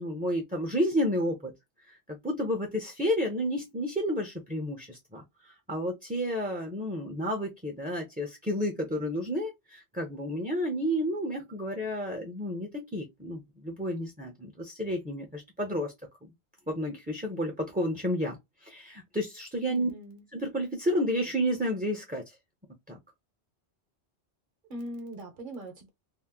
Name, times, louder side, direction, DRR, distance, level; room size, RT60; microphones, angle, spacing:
voice 1, 0.0-1.5 1.9-2.0 2.2-15.9 16.2-16.3 16.7-19.9 20.3-22.4 22.9-23.0, equal, 10° right, 0.6 m, -31 dB
voice 2, 19.7-20.2 24.7-25.9, right 1 dB, 50° right, 1.0 m, -41 dB
2.8 x 2.1 x 3.5 m
omnidirectional pair, 1.1 m